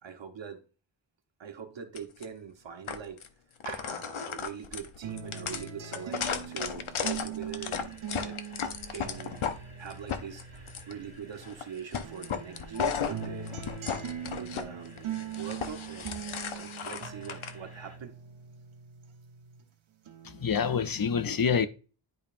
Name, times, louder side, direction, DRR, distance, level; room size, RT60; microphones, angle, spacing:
voice 1, 0.0-0.6 1.4-3.2 3.6-8.4 8.9-9.4 9.8-13.6 14.4-16.2 16.5-18.1, right 7 dB, 65° right, 1.3 m, -42 dB
sound 1, 1.9-2.2 2.9-3.3 3.6-9.6 9.9-10.9 11.4-11.6 11.9-14.6 15.0-17.5, left 7 dB, 85° left, 0.8 m, -35 dB
sound 2, 5.0-11.7 12.0-19.7 20.1-21.0, right 8 dB, 90° right, 1.0 m, -42 dB
sound 3, 7.6-18.0, equal, 30° right, 3.1 m, -54 dB
voice 2, 20.2-21.7, left 6 dB, 45° left, 0.6 m, -27 dB
10.5 x 5.3 x 2.6 m
wide cardioid pair, 90°, 47 cm